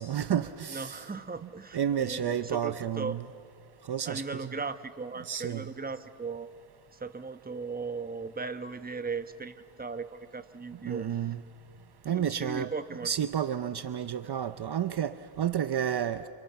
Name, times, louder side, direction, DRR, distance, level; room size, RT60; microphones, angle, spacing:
voice 1, 0.0-1.0 1.7-3.3 3.9-4.5 5.2-5.7 10.9-11.4 12.1-12.7 13.0-16.3, right 9 dB, 50° right, 11 dB, 0.8 m, -31 dB
voice 2, 0.7-3.2 4.1-6.5 6.9-11.2 12.1-13.1, right 4 dB, 20° right, 9 dB, 1.1 m, -37 dB
29.5 x 29.0 x 5.9 m, 2.3 s
cardioid pair, 90°, 50 cm